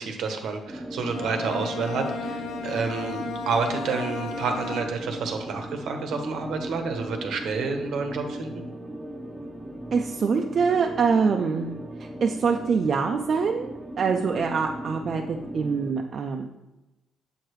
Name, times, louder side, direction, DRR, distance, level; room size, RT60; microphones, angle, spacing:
voice 1, 0.0-8.6, right 4 dB, 75° right, 5 dB, 0.8 m, -29 dB
sound 1, 0.7-15.9, right 1 dB, 15° right, 0.6 m, -38 dB
Bowed string instrument, 1.0-5.3, left 3 dB, 75° left, 0.5 m, -35 dB
voice 2, 9.9-11.7 12.0-13.7 14.0-16.6, right 5 dB, 50° right, 3 dB, 0.4 m, -24 dB
7.1 x 4.8 x 3.1 m, 1.0 s
cardioid pair, 90°, 0 cm